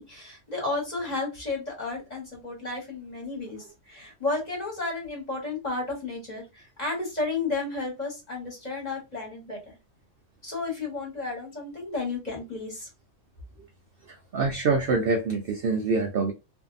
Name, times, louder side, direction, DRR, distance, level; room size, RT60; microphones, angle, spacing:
voice 1, 0.0-9.6 10.4-12.9, left 3 dB, 30° left, 1.2 m, -32 dB
voice 2, 14.1-16.3, right 4 dB, 65° right, 0.5 m, -25 dB
2.6 x 2.6 x 2.4 m
omnidirectional pair, 1.5 m